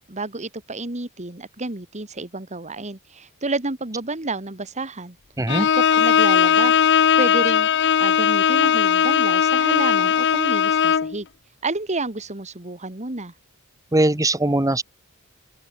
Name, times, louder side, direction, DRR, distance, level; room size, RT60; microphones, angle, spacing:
voice 1, 0.0-5.2 5.7-6.7 7.2-11.3 11.6-13.3, right 3 dB, 30° right, 2.1 m, -30 dB
voice 2, 5.4-5.7 13.9-14.8, right 2 dB, 15° right, 1.1 m, -20 dB
Bowed string instrument, 5.5-11.2, left 8 dB, 55° left, 0.6 m, -18 dB
open air
head